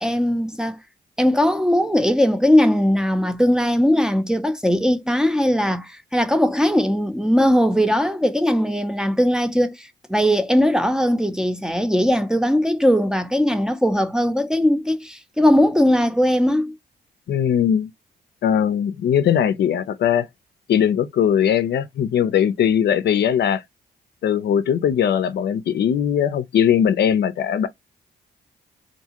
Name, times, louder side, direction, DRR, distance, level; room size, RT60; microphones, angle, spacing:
voice 1, 0.0-0.8 1.2-16.8, equal, 5° right, 0.5 m, -19 dB
voice 2, 17.3-17.9 18.4-20.3 20.7-23.6 24.2-27.7, left 9 dB, 65° left, 0.5 m, -20 dB
2.6 x 2.3 x 2.8 m
supercardioid pair, 55°, 19 cm